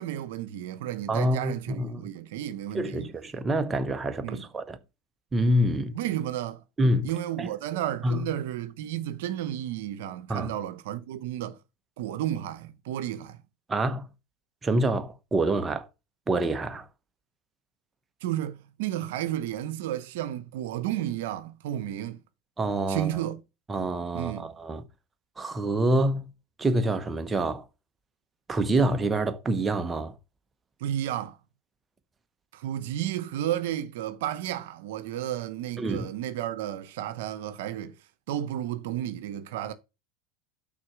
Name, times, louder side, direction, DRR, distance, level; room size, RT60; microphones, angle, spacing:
voice 1, 0.0-3.1 4.2-4.4 5.9-6.6 7.0-11.6 12.0-13.4 18.2-22.2 22.9-23.4 24.1-24.5 30.8-31.4 32.5-37.9 38.3-39.7, right 12 dB, 75° right, 0.7 m, -32 dB
voice 2, 1.1-2.0 2.7-4.8 5.3-6.0 6.8-7.1 7.4-7.5 8.0-8.2 10.3-10.5 13.7-14.1 14.6-15.9 16.3-16.9 22.6-23.1 23.7-24.8 25.4-26.2 26.6-27.7 28.5-30.1 35.8-36.1, right 1 dB, 20° right, 0.8 m, -26 dB
6.1 x 4.0 x 6.0 m
hypercardioid pair, 105°, 0 cm